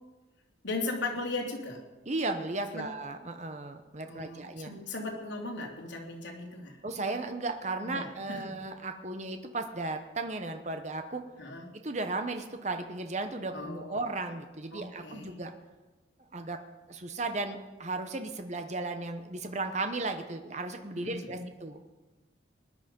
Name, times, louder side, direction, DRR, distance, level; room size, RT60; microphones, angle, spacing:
voice 1, 0.6-1.8 2.7-2.9 4.1-6.8 7.8-8.6 11.4-11.7 13.5-14.0 14.7-15.3 21.0-21.5, left 2 dB, 75° left, 0 dB, 2.9 m, -37 dB
voice 2, 2.1-4.7 6.8-11.2 11.8-15.5 16.3-16.6 16.9-21.8, right 2 dB, 35° right, 7 dB, 0.9 m, -35 dB
19.5 x 11.0 x 5.3 m, 1.2 s
head